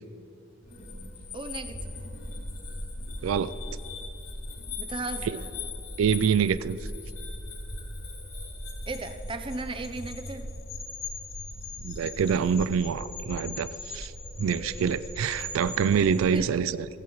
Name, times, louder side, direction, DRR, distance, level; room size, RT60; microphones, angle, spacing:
sound 1, 0.6-16.3, left 2 dB, 85° left, 3.0 m, -38 dB
voice 1, 1.3-1.9 4.8-5.5 8.9-10.5 16.3-16.4, right 3 dB, 25° right, 8 dB, 0.6 m, -36 dB
voice 2, 3.2-3.5 6.0-6.8 11.8-14.1 14.4-16.9, right 7 dB, 85° right, 15 dB, 0.3 m, -26 dB
16.0 x 15.5 x 3.1 m, 3.0 s
head